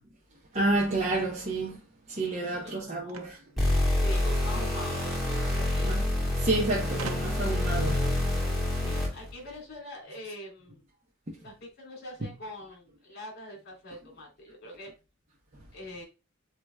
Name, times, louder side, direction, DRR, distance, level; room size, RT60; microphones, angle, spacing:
voice 1, 0.5-1.8 2.1-3.4 5.8-6.0 6.4-8.1 15.5-15.6, right 2 dB, 35° right, 0.9 m, -29 dB
voice 2, 2.4-3.3 3.9-5.1 5.4-5.9 8.7-10.8 11.3-14.9 15.7-16.0, left 1 dB, 50° left, 2.8 m, -44 dB
sound 1, 3.1-4.5 5.6-5.7 5.9-6.0 7.0-7.6, right 5 dB, 90° right, 0.8 m, -43 dB
sound 2, 3.6-9.3, left 1 dB, ahead, 2.1 m, -27 dB
7.8 x 3.0 x 2.2 m
head